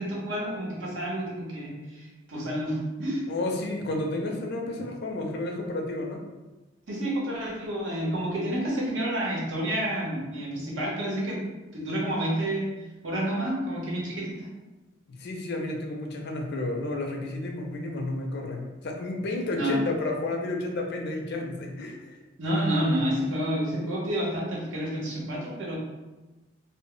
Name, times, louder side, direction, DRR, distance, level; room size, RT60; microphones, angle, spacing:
voice 1, 0.0-3.3 6.9-11.4 11.7-12.6 13.0-14.3 19.5-19.8 22.4-25.8, right 1 dB, 75° right, -4 dB, 0.8 m, -29 dB
voice 2, 3.3-6.2 15.1-22.2, left 2 dB, 55° left, 1 dB, 0.4 m, -31 dB
2.0 x 2.0 x 3.7 m, 1.1 s
head